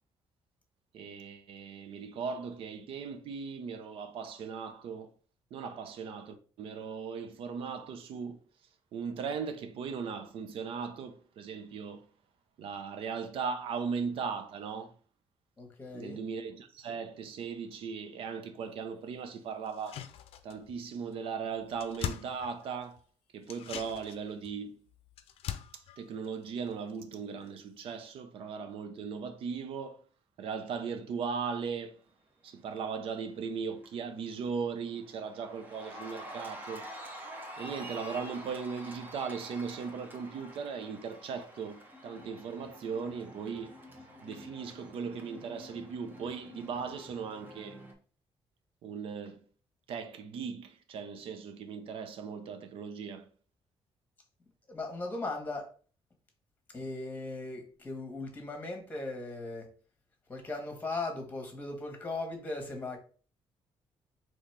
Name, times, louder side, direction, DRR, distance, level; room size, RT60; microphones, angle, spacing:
voice 1, 0.9-5.1 5.5-8.4 8.9-12.1 12.6-15.0 15.9-20.0 20.4-23.0 23.3-24.8 25.7-30.0 30.4-32.0 32.4-36.9 37.6-43.8 44.2-47.9 48.8-49.4 49.9-53.3, right 6 dB, 70° right, 0.7 m, -38 dB
voice 2, 15.6-16.2 54.7-55.7 56.7-59.7 60.3-63.0, left 2 dB, 20° left, 1.2 m, -38 dB
sound 1, 19.7-20.8 21.1-21.2 21.5-23.0 23.4-27.2 27.5-27.6, left 10 dB, 80° left, 0.5 m, -42 dB
Cheering, 33.1-33.5 33.8-47.9, equal, 20° right, 0.8 m, -48 dB
4.1 x 3.1 x 3.2 m
cardioid pair, 140°, 10 cm